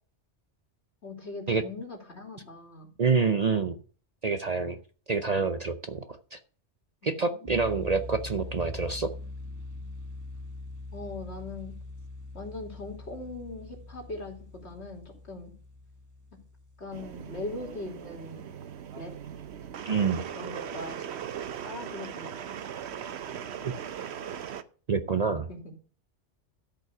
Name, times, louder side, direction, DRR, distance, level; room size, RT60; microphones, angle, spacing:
voice 1, 1.0-2.9 7.0-7.7 10.9-11.7 12.3-15.5 16.8-18.5 18.9-19.1 20.3-21.0 21.6-22.6 25.5-25.6, left 2 dB, 65° left, 1 dB, 3.3 m, -40 dB
voice 2, 3.0-3.7 4.2-4.8 5.1-6.4 7.0-9.1 19.8-20.2 23.6-23.7 24.9-25.5, right 4 dB, 40° right, 9 dB, 0.7 m, -27 dB
sound 1, 7.4-18.3, left 2 dB, 15° right, 1.2 m, -43 dB
sound 2, 16.9-24.6, right 8 dB, 70° right, 1.0 m, -39 dB
13.0 x 5.5 x 6.0 m, 0.41 s
omnidirectional pair, 1.2 m